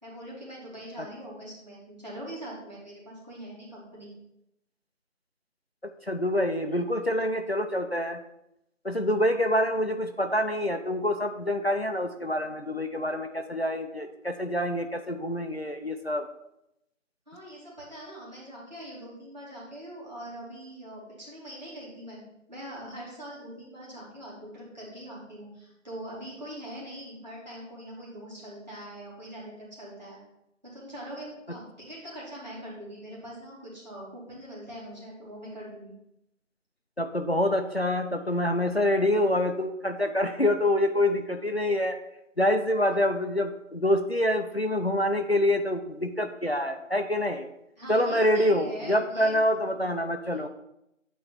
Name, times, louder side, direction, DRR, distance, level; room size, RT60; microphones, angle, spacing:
voice 1, 0.0-4.1 17.3-22.2 22.5-30.2 30.6-35.9 47.8-49.7, right 1 dB, 35° right, -7 dB, 2.6 m, -42 dB
voice 2, 6.1-8.2 8.8-16.3 37.0-42.0 42.4-47.5 47.9-50.5, left 1 dB, 55° left, 6 dB, 0.5 m, -26 dB
8.8 x 3.1 x 6.0 m, 0.84 s
figure-of-eight pair, 180°, 39 cm